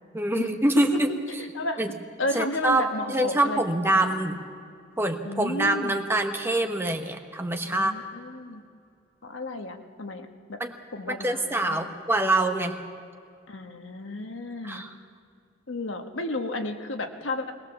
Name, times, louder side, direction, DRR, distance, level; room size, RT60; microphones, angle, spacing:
voice 1, 0.1-1.1 1.8-1.9 2.3-4.4 5.0-7.9 10.6-10.7 11.1-12.7 14.6-14.9, right 2 dB, 10° right, 4 dB, 1.2 m, -25 dB
voice 2, 2.2-4.1 5.2-6.0 7.6-8.6 9.2-10.6 10.9-11.9 13.5-14.8 15.7-17.5, left 2 dB, 85° left, 5 dB, 1.4 m, -33 dB
20.5 x 20.0 x 7.2 m, 2.3 s
head